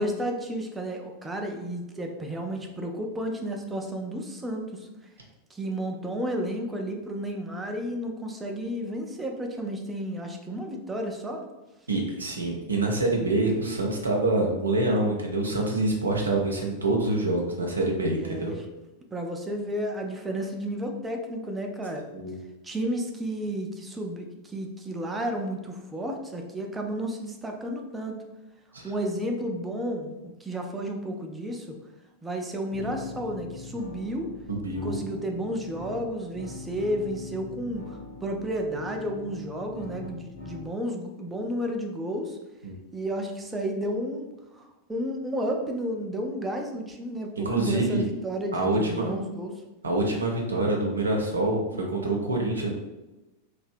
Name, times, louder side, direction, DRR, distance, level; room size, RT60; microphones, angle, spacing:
voice 1, 0.0-4.9 5.5-11.4 18.2-18.6 19.1-22.0 22.6-28.1 28.8-31.8 32.2-34.3 34.7-42.4 42.9-44.3 44.5-49.5, equal, 10° right, 2 dB, 0.3 m, -32 dB
voice 2, 11.9-18.5 22.1-22.3 28.7-28.9 34.5-34.9 42.6-42.7 47.4-48.0 48.5-49.1 49.8-51.6 51.9-52.7, right 2 dB, 75° right, 0 dB, 0.4 m, -26 dB
sound 1, 32.7-40.7, left 2 dB, 60° left, 0.7 m, -42 dB
2.6 x 2.0 x 2.5 m, 1.0 s
figure-of-eight pair, 90°, 0 cm